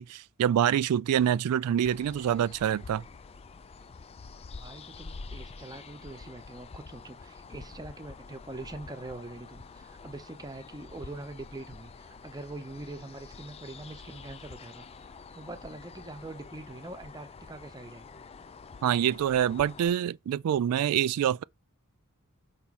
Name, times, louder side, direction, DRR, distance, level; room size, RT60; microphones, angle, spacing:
voice 1, 0.0-3.0 18.8-21.4, right 10 dB, 90° right, 0.3 m, -26 dB
sound 1, 1.8-19.9, left 4 dB, 30° left, 0.4 m, -47 dB
voice 2, 4.5-18.1, right 2 dB, 20° right, 0.8 m, -43 dB
5.9 x 5.5 x 4.1 m
head